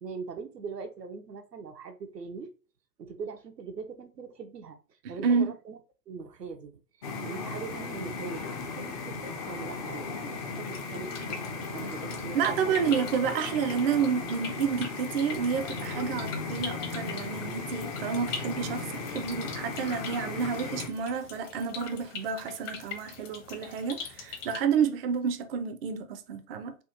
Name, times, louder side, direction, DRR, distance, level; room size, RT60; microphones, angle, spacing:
voice 1, 0.0-2.5 3.0-4.8 5.1-5.8 6.1-6.7 7.2-11.4 11.7-12.8, right 5 dB, 85° right, 0.6 m, -41 dB
voice 2, 5.0-5.6 12.3-26.8, right 6 dB, 40° right, 0.4 m, -30 dB
sound 1, 7.0-20.9, left 4 dB, 25° left, 0.4 m, -36 dB
sound 2, 10.7-24.6, left 6 dB, 50° left, 0.9 m, -43 dB
3.6 x 2.2 x 2.7 m
figure-of-eight pair, 90°, 48 cm